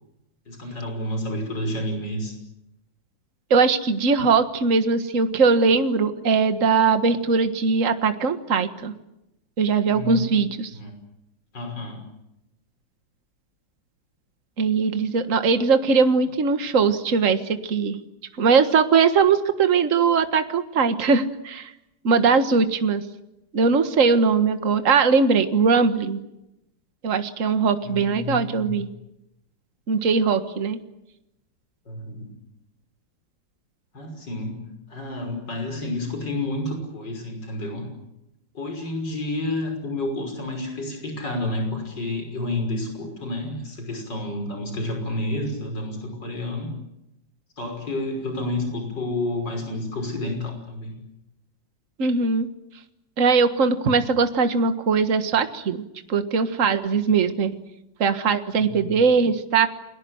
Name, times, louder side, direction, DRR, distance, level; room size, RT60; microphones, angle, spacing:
voice 1, 0.5-2.3 9.9-10.4 10.7-10.9 11.5-12.0 27.8-28.8 31.9-32.3 33.9-37.9 38.5-46.7 47.6-50.9 58.6-59.0, left 1 dB, 65° left, 4 dB, 6.5 m, -30 dB
voice 2, 3.5-8.9 9.6-10.7 14.6-18.0 18.4-21.7 22.0-23.0 23.5-26.2 27.0-28.9 29.9-30.8 52.0-52.5 53.2-55.8 56.1-57.5 58.0-59.7, right 5 dB, 45° right, 9 dB, 1.8 m, -20 dB
29.5 x 22.5 x 8.0 m, 0.87 s
omnidirectional pair, 2.1 m